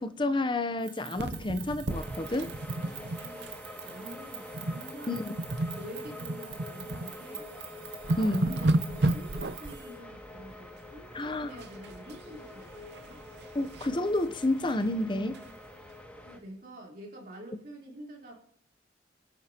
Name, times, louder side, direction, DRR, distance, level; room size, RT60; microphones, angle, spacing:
voice 1, 0.0-2.5 5.1-5.3 8.2-8.6 11.1-11.5 13.5-15.4, left 2 dB, 25° left, 0.7 m, -30 dB
sound 1, 0.8-10.0, right 10 dB, 85° right, 1.7 m, -47 dB
sound 2, 1.1-3.6 3.8-4.0 4.5-4.9 5.2-7.1 7.5-7.6 7.9-9.8 11.6-12.1 12.5-14.0 14.4-14.5 14.8-14.9 15.3-15.4, right 2 dB, 65° right, 0.7 m, -32 dB
sound 3, 1.9-16.4, left 1 dB, 10° left, 2.0 m, -46 dB
voice 2, 2.7-5.3 5.7-7.5 8.0-13.2 16.2-18.3, right 1 dB, 50° right, 3.6 m, -47 dB
26.0 x 9.4 x 2.9 m
head